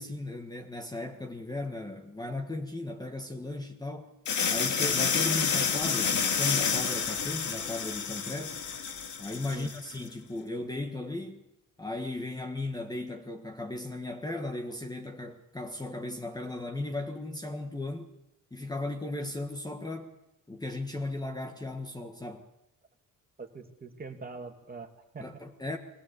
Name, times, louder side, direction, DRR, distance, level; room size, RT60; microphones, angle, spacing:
voice 1, 0.0-4.1 4.5-8.6 9.2-11.4 11.8-18.1 18.5-20.1 20.5-22.4 25.2-25.8, left 2 dB, 10° left, 1.5 m, -36 dB
sound 1, 4.3-10.0, left 6 dB, 60° left, 2.2 m, -29 dB
voice 2, 23.4-25.2, right 4 dB, 25° right, 2.2 m, -43 dB
21.5 x 17.5 x 8.2 m
cardioid pair, 135°, 33 cm